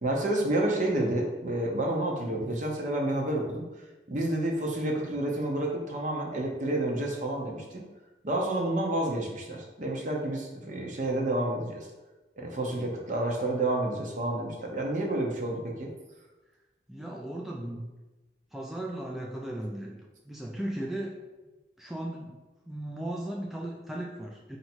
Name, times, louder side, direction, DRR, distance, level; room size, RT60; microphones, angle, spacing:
voice 1, 0.0-3.6 4.1-7.8 8.2-11.9 12.4-15.9, right 1 dB, 45° right, 0 dB, 0.8 m, -29 dB
voice 2, 16.9-18.0 18.5-21.2 21.8-22.4 22.6-24.6, right 1 dB, ahead, -2 dB, 0.3 m, -36 dB
4.4 x 2.7 x 4.4 m, 1.1 s
head